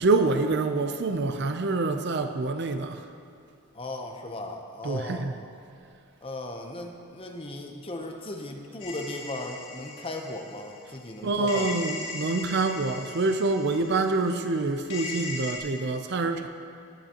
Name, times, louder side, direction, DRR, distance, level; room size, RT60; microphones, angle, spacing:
voice 1, 0.0-3.0 4.8-5.3 11.2-16.5, right 3 dB, 50° right, 8 dB, 0.5 m, -26 dB
voice 2, 3.7-5.3 6.2-11.7, left 2 dB, 25° left, 3 dB, 0.8 m, -37 dB
sound 1, 8.8-11.1 11.5-15.6, left 3 dB, 55° left, 2.1 m, -39 dB
19.0 x 8.0 x 3.0 m, 2.6 s
head